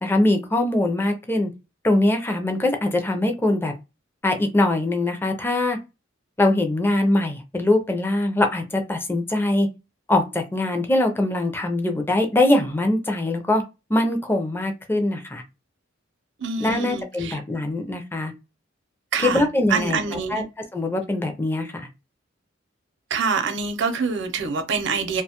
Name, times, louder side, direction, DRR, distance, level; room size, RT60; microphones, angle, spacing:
voice 1, 0.0-1.5 1.8-3.7 4.2-5.8 6.4-9.7 10.1-13.6 13.9-15.4 16.6-18.3 19.2-20.0 20.3-20.4 20.7-21.9, left 1 dB, 10° left, 0.4 m, -22 dB
voice 2, 16.4-17.4 19.1-20.5 23.1-25.2, right 5 dB, 65° right, 0.6 m, -25 dB
2.4 x 2.2 x 2.8 m
head